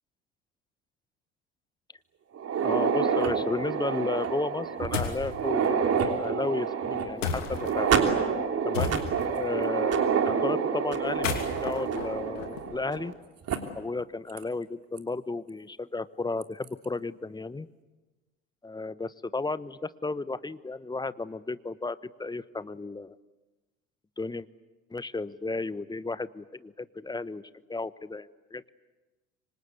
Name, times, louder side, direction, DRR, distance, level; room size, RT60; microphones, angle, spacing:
sound 1, 2.3-13.1 13.5-13.6 14.4-14.5 15.0-15.1 16.4-16.7, right 6 dB, 40° right, 3.3 m, -28 dB
voice 1, 2.6-7.9 8.6-9.0 9.4-13.1 13.7-17.7 18.6-23.2 24.2-24.5 24.9-27.4 27.7-28.6, left 3 dB, 10° left, 16 dB, 1.0 m, -33 dB
sound 2, 4.9-5.3 7.2-7.7 8.7-9.4 11.0-13.0, left 5 dB, 80° left, 3.0 m, -33 dB
27.0 x 25.0 x 8.2 m, 1.2 s
hypercardioid pair, 65°, 37 cm